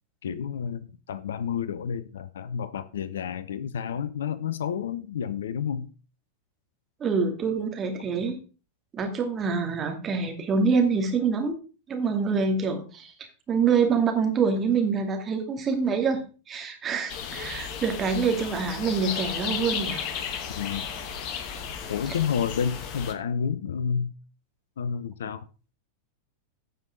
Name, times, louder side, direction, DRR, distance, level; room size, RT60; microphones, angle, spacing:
voice 1, 0.2-5.9 20.6-20.8 21.9-24.1 24.8-25.5, left 7 dB, 65° left, 0.6 m, -30 dB
voice 2, 7.0-8.4 8.9-11.5 11.9-13.1 13.5-16.2 16.5-20.1, right 5 dB, 25° right, 2.3 m, -25 dB
sound 1, 17.1-23.1, left 7 dB, 40° left, 1.4 m, -34 dB
16.0 x 5.4 x 3.8 m
figure-of-eight pair, 90°, 0 cm